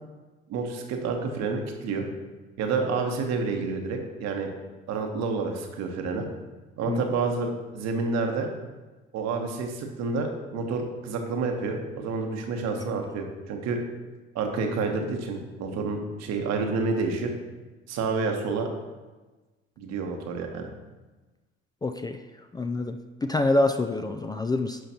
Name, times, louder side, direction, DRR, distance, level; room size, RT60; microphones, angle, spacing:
voice 1, 0.5-2.0 2.6-4.5 4.9-6.3 6.8-8.5 9.1-13.8 14.3-17.3 17.9-18.7 19.8-20.7, right 4 dB, 60° right, 3 dB, 1.1 m, -29 dB
voice 2, 21.8-22.2 22.5-24.8, left 2 dB, 15° left, 6 dB, 0.4 m, -26 dB
11.0 x 5.1 x 2.9 m, 1.2 s
hypercardioid pair, 55°, 30 cm